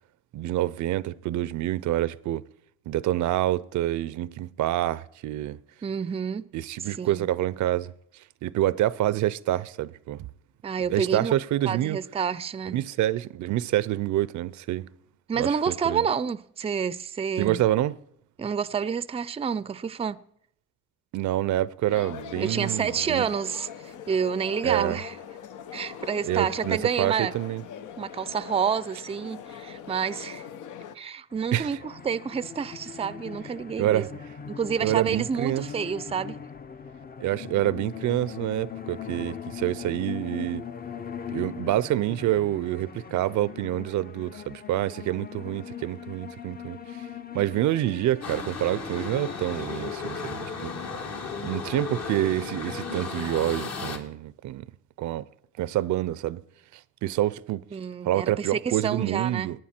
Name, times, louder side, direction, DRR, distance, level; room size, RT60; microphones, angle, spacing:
voice 1, 0.3-2.5 2.9-5.6 6.5-10.3 10.9-12.0 12.7-14.9 15.4-16.1 17.4-18.0 21.1-23.3 24.6-25.0 26.3-27.6 31.5-31.7 33.8-34.1 34.8-35.7 37.2-40.7 41.3-47.0 47.3-50.7 51.4-54.7 55.0-55.3 55.6-56.4 56.7-57.6 58.0-59.6, right 14 dB, 75° right, 0.5 m, -27 dB
voice 2, 5.8-6.4 7.0-7.3 10.6-11.3 11.7-12.8 15.3-17.6 18.4-20.2 22.4-25.2 25.7-27.3 28.0-30.5 30.9-34.1 34.5-36.4 57.7-59.5, right 6 dB, 20° right, 0.4 m, -29 dB
sound 1, 21.9-31.0, left 8 dB, 80° left, 0.9 m, -41 dB
sound 2, 31.3-50.1, left 7 dB, 30° left, 0.7 m, -40 dB
sound 3, 48.2-54.0, left 5 dB, 55° left, 2.0 m, -34 dB
18.5 x 9.4 x 4.4 m
cardioid pair, 90°, 30 cm